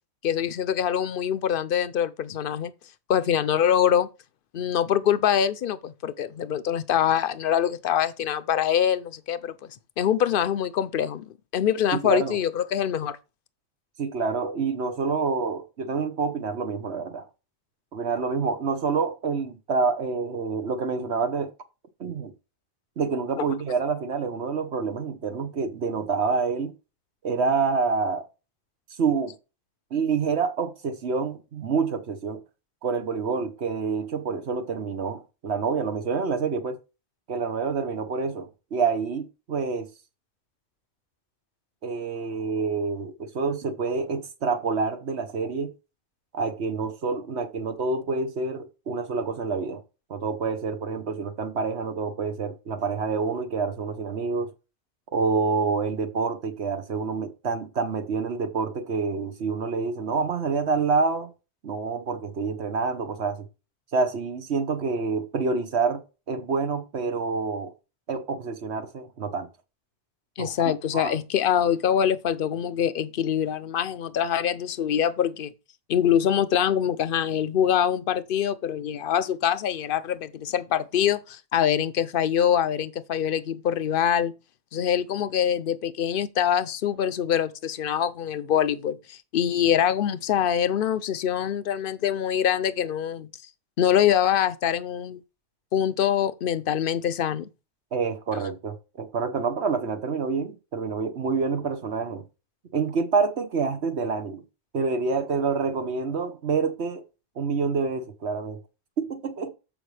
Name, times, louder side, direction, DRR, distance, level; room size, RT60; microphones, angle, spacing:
voice 1, 0.2-2.7 3.1-4.1 4.5-9.5 10.0-11.2 11.5-13.2 23.4-23.5 70.4-75.5 75.9-84.3 84.7-93.3 93.8-95.2 95.7-97.4, left 9 dB, 60° left, 0.8 m, -24 dB
voice 2, 11.9-12.4 14.0-17.3 17.9-21.5 22.0-22.3 23.0-26.7 27.2-28.2 29.0-29.3 29.9-32.4 32.8-36.8 37.3-39.9 41.8-45.7 46.3-49.8 50.1-54.5 55.1-61.3 61.6-63.4 63.9-66.0 66.3-67.7 68.1-69.5 70.4-71.1 97.9-102.2 102.7-104.4 104.7-107.0 107.4-108.6 109.0-109.5, right 4 dB, 75° right, 1.3 m, -27 dB
14.0 x 5.2 x 3.3 m
omnidirectional pair, 1.1 m